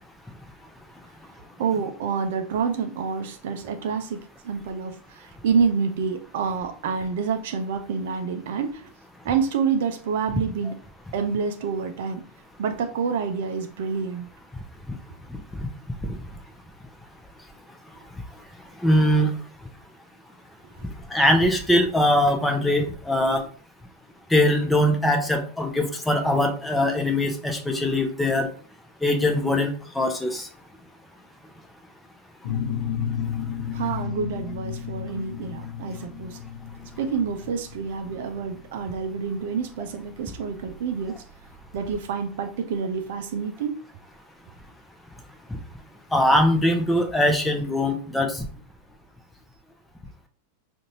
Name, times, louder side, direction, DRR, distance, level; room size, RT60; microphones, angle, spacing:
voice 1, 1.6-8.9 9.2-10.8 11.1-12.2 12.6-14.2 33.7-36.4 37.0-41.2 41.7-43.8, right 6 dB, 55° right, 7 dB, 0.5 m, -28 dB
voice 2, 18.8-19.3 21.1-23.4 24.3-28.5 29.0-30.5 45.5-45.6 46.1-48.4, left 1 dB, 5° left, 4 dB, 0.7 m, -21 dB
sound 1, 32.4-41.8, left 8 dB, 55° left, 0.8 m, -33 dB
5.2 x 2.5 x 2.8 m, 0.40 s
figure-of-eight pair, 90°, 0 cm